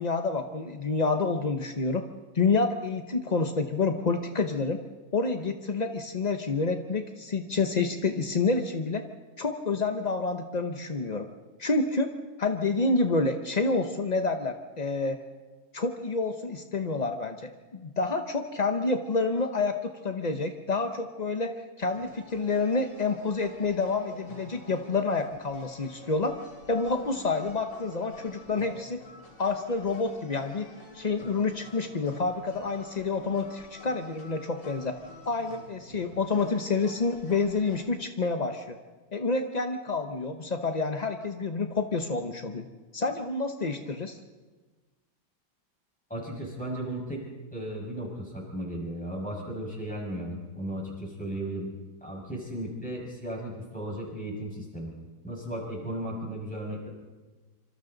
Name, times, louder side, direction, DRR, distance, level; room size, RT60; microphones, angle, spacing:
voice 1, 0.0-2.0 2.3-4.8 5.1-9.0 9.4-11.3 11.6-12.1 12.4-15.2 15.7-17.5 17.8-26.3 26.7-29.0 29.4-30.7 30.9-34.9 35.3-38.8 39.1-42.7 42.9-44.2, left 3 dB, 50° left, 6 dB, 0.5 m, -28 dB
sound 1, 21.9-37.9, left 2 dB, 65° left, 3.4 m, -49 dB
voice 2, 46.1-47.2 47.5-51.7 52.0-54.9 55.2-56.9, right 1 dB, 5° left, -2 dB, 5.7 m, -35 dB
26.0 x 26.0 x 4.0 m, 1.3 s
omnidirectional pair, 2.2 m